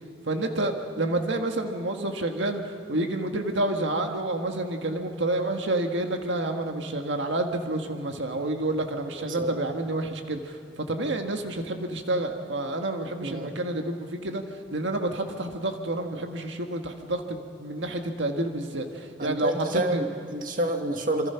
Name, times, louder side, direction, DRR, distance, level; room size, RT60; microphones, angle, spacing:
voice 1, 0.2-2.6 2.9-14.4 14.7-20.0, right 2 dB, 75° right, 4 dB, 1.7 m, -29 dB
voice 2, 19.2-21.3, right 1 dB, 45° right, 4 dB, 1.9 m, -28 dB
27.5 x 25.5 x 5.8 m, 2.3 s
head